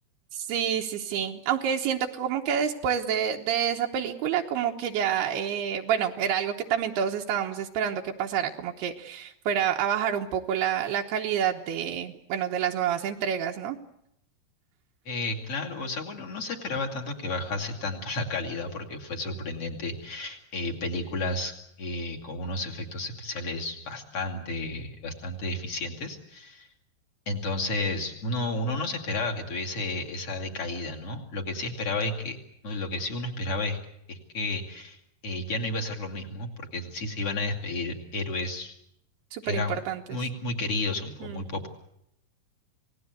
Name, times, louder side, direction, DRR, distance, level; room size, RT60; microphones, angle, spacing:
voice 1, 0.3-13.8 39.3-40.2 41.2-41.4, right 8 dB, 80° right, 2 dB, 3.1 m, -28 dB
voice 2, 15.1-26.7 27.3-32.4 32.6-33.8 34.1-35.0 35.2-38.7 39.4-39.8 40.1-41.7, left 2 dB, 40° left, 1 dB, 2.8 m, -32 dB
28.0 x 18.5 x 8.1 m, 0.77 s
omnidirectional pair, 4.8 m